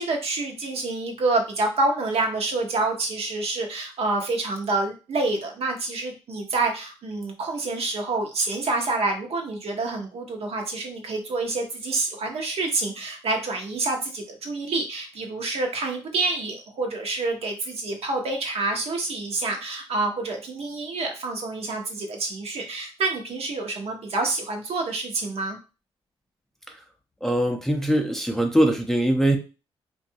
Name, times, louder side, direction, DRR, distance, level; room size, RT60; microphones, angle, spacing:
voice 1, 0.0-25.6, right 3 dB, 60° right, 3 dB, 0.8 m, -27 dB
voice 2, 27.2-29.4, right 1 dB, 5° left, 3 dB, 0.5 m, -22 dB
2.5 x 2.3 x 2.7 m, 0.32 s
supercardioid pair, 55°, 12 cm